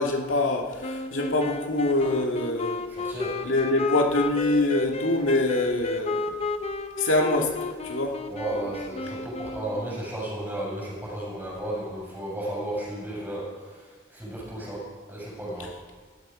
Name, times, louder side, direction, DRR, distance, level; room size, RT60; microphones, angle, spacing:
voice 1, 0.0-2.8 3.4-6.3 7.0-7.5 7.8-8.2 8.5-8.7, left 2 dB, 75° left, 1 dB, 2.4 m, -25 dB
sound 1, 0.8-10.0, left 3 dB, 30° left, 0.8 m, -32 dB
voice 2, 2.9-3.4 8.3-13.8 14.1-15.7, right 1 dB, 10° right, -5 dB, 6.3 m, -34 dB
17.5 x 13.5 x 5.2 m, 1.5 s
head